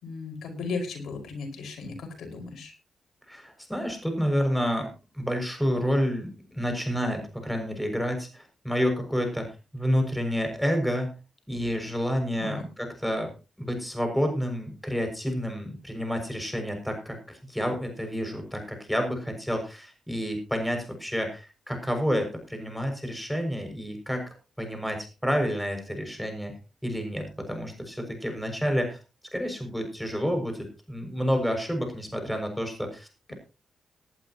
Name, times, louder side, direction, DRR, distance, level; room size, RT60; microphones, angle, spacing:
voice 1, 0.0-2.7 12.3-12.6, left 4 dB, 80° left, 3 dB, 5.4 m, -35 dB
voice 2, 3.3-4.9 5.1-11.1 11.5-24.2 24.6-26.5 26.8-29.0 29.3-33.3, equal, ahead, 4 dB, 6.7 m, -29 dB
19.0 x 11.5 x 3.0 m, 0.31 s
supercardioid pair, 55°, 0 cm